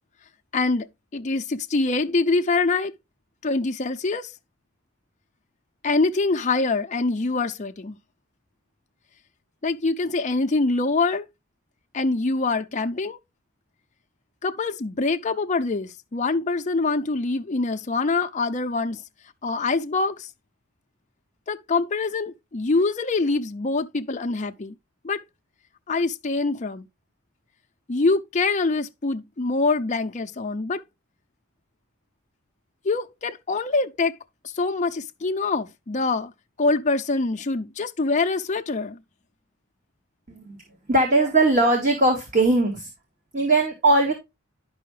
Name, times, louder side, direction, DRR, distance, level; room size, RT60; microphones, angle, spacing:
voice 1, 0.5-0.9 1.1-2.9 3.4-4.3 5.8-8.0 9.6-11.3 11.9-13.2 14.4-19.0 19.4-20.3 21.5-24.7 25.0-25.2 25.9-26.8 27.9-30.8 32.8-34.1 34.5-36.3 36.6-39.0, left 3 dB, 35° left, 0.5 m, -24 dB
voice 2, 40.9-42.9 43.3-44.1, right 2 dB, 35° right, 1.7 m, -19 dB
11.0 x 5.5 x 3.2 m
head